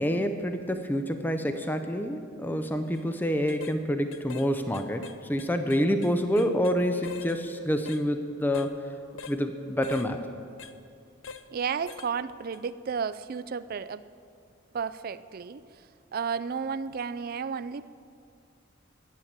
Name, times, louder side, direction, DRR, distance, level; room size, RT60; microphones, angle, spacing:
voice 1, 0.0-8.9 9.3-10.3, equal, 10° left, 7 dB, 0.5 m, -27 dB
sound 1, 2.8-3.0 3.5-3.8 4.1-4.5 4.7-6.8 7.0-7.4 7.9-8.0 8.5-8.7 9.2-9.4 9.8-10.1 10.6-10.7 11.2-11.5 11.9-12.1 12.5-12.7, left 6 dB, 65° left, 0.6 m, -43 dB
voice 2, 11.5-14.0 14.7-17.9, right 6 dB, 45° right, 14 dB, 0.4 m, -33 dB
11.5 x 8.2 x 8.8 m, 2.4 s
head